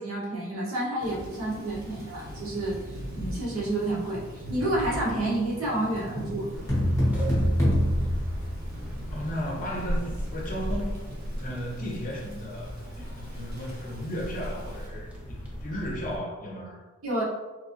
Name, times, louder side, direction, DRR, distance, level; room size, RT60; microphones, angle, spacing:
voice 1, 0.0-2.8 3.1-6.5 17.0-17.2, right 1 dB, 85° right, -5 dB, 1.0 m, -29 dB
Thunder / Rain, 1.0-14.9, equal, 50° right, 0.8 m, -41 dB
sound 1, 6.5-16.2, equal, 5° right, 0.5 m, -36 dB
sound 2, 6.7-9.2, equal, 15° left, 1.0 m, -25 dB
voice 2, 9.1-11.0 11.3-16.8, equal, 40° left, -2 dB, 0.7 m, -35 dB
3.1 x 2.5 x 2.6 m, 1.2 s
head